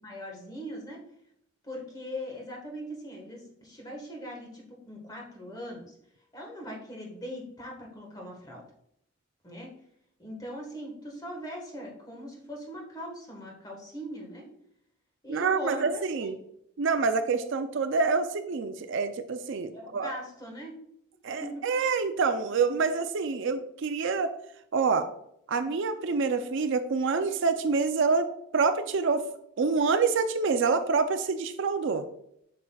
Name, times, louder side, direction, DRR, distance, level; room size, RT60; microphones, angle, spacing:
voice 1, 0.0-1.0 1.6-5.9 6.3-8.6 9.4-9.7 10.2-14.5 15.2-16.3 19.7-20.8 21.4-21.6, equal, 20° left, -1 dB, 1.4 m, -40 dB
voice 2, 15.3-16.4 16.8-20.1 21.2-24.3 24.7-25.1 25.5-29.2 29.6-32.0, right 4 dB, 60° right, 9 dB, 0.4 m, -27 dB
7.4 x 6.0 x 2.3 m, 0.73 s
head